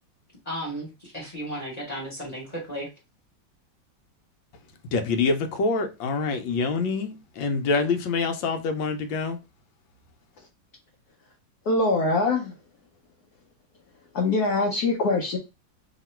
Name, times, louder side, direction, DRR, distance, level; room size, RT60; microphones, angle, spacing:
voice 1, 0.4-2.9, equal, 25° left, 1.0 m, -34 dB
voice 2, 4.9-9.4, left 4 dB, 85° left, 1.4 m, -26 dB
voice 3, 11.7-12.5 14.1-15.4, left 3 dB, 65° left, 1.1 m, -23 dB
3.0 x 2.8 x 4.3 m
omnidirectional pair, 2.0 m